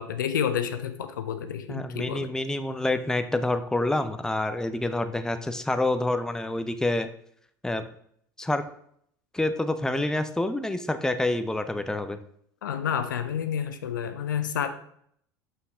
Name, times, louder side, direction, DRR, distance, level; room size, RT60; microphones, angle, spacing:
voice 1, 0.0-2.3 12.6-14.7, left 8 dB, 80° left, 9 dB, 0.7 m, -29 dB
voice 2, 1.7-7.1 7.6-7.9 8.4-8.7 9.3-12.2, left 2 dB, 5° left, 9 dB, 0.7 m, -27 dB
6.2 x 5.6 x 4.9 m, 0.66 s
hypercardioid pair, 70°, 10 cm